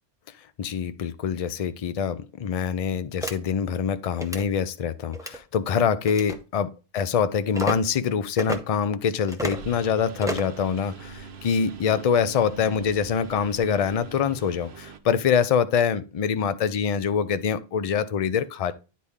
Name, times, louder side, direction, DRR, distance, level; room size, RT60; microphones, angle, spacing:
voice 1, 0.6-18.7, left 7 dB, 45° left, 0.5 m, -25 dB
sound 1, 3.2-3.3 4.1-4.4 5.1-5.4 6.1-6.4 7.5-7.8 8.4-8.6 9.3-9.6 10.2-10.6, right 1 dB, 5° right, 0.7 m, -30 dB
Engine, 9.5-15.0, right 6 dB, 80° right, 1.0 m, -42 dB
9.7 x 4.1 x 3.6 m
omnidirectional pair, 1.1 m